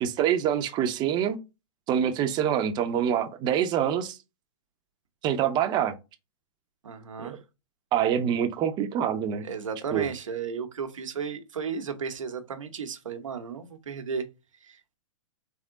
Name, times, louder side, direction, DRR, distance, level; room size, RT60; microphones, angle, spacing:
voice 1, 0.0-1.4 1.9-4.2 5.2-5.9 7.2-7.4 7.9-9.5 9.9-10.1, right 9 dB, 25° right, 0.6 m, -25 dB
voice 2, 6.8-7.4 9.4-14.2 14.6-15.0, right 6 dB, 90° right, 1.0 m, -34 dB
3.6 x 3.6 x 3.6 m
hypercardioid pair, 130°, 16 cm